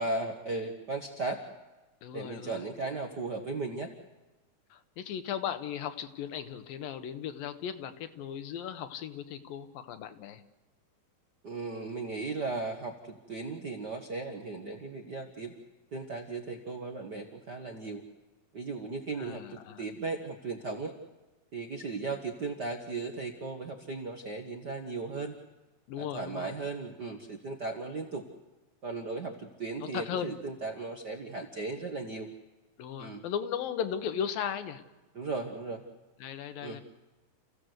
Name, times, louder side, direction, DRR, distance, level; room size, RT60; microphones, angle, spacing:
voice 1, 0.0-1.4 2.1-3.9 11.4-15.5 15.9-18.0 18.5-20.9 21.5-25.4 26.0-28.2 28.8-32.3 33.0-33.2 35.1-35.8 36.6-36.8, right 3 dB, 55° right, 4 dB, 1.1 m, -36 dB
voice 2, 2.0-2.6 4.7-10.4 19.2-19.8 25.9-26.5 29.8-30.4 32.8-34.8 36.2-36.8, left 9 dB, 80° left, 10 dB, 3.0 m, -37 dB
29.5 x 16.0 x 8.0 m, 1.2 s
omnidirectional pair, 4.1 m